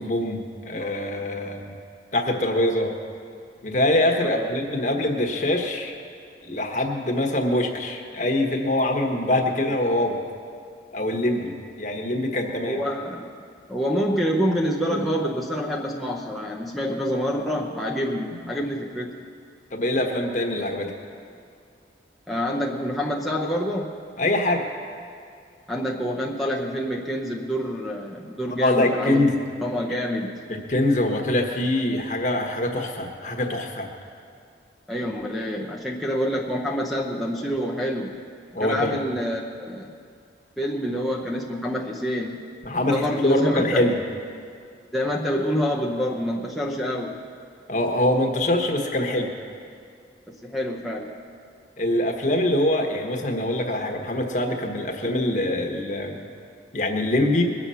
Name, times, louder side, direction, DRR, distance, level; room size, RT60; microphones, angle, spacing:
voice 1, 0.0-1.7 2.1-2.9 3.6-5.9 6.4-10.2 10.9-12.8 19.7-20.9 24.2-24.6 28.5-29.3 30.5-33.9 38.5-38.9 42.6-43.9 47.7-49.3 51.8-56.2 56.7-57.4, left 1 dB, 40° left, 3 dB, 1.2 m, -24 dB
voice 2, 12.6-13.3 13.7-19.2 22.3-24.0 25.7-29.3 29.6-30.5 34.9-38.2 38.6-39.9 40.6-42.4 42.8-43.9 44.9-47.2 50.3-51.1, equal, ahead, -3 dB, 0.7 m, -27 dB
21.5 x 7.5 x 5.6 m, 2.3 s
head